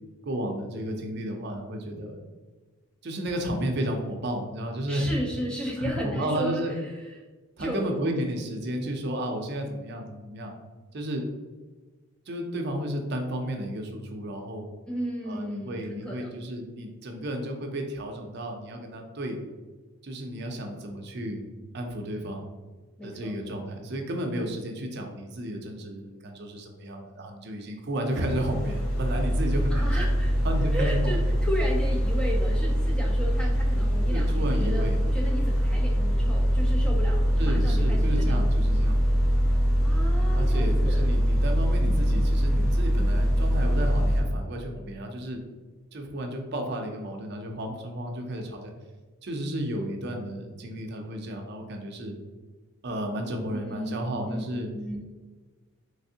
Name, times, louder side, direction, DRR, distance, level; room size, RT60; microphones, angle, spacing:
voice 1, 0.2-2.2 3.0-5.1 5.8-6.7 7.6-10.5 10.9-11.3 12.3-14.7 15.3-19.4 20.0-21.4 21.7-22.4 23.0-29.8 30.4-31.3 34.1-35.0 37.4-39.0 40.3-45.4 45.9-48.7 49.2-52.1 52.8-54.7, right 1 dB, 50° right, 3 dB, 0.5 m, -32 dB
voice 2, 4.9-7.1 7.6-8.0 14.9-16.4 23.0-23.4 29.7-30.3 30.7-38.4 39.8-41.0 53.5-54.4 54.7-55.1, equal, 5° left, -2 dB, 0.3 m, -34 dB
sound 1, 28.1-44.2, equal, 90° left, 1.1 m, -23 dB
3.3 x 3.2 x 2.7 m, 1.3 s
head